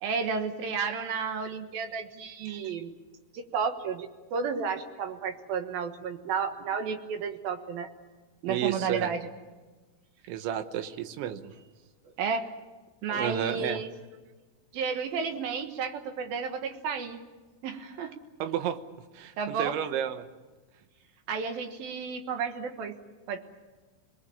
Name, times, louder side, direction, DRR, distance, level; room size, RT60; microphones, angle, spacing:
voice 1, 0.0-2.9 3.3-7.9 8.4-9.3 12.2-12.5 13.0-13.9 14.7-17.2 17.6-18.1 19.4-19.8 21.3-23.0 23.3-23.4, right 5 dB, 65° right, 7 dB, 2.8 m, -32 dB
voice 2, 8.5-9.1 10.3-11.5 13.1-13.8 18.4-18.8 19.1-20.3, right 10 dB, 85° right, 10 dB, 3.5 m, -31 dB
26.0 x 19.5 x 8.6 m, 1.3 s
omnidirectional pair, 5.2 m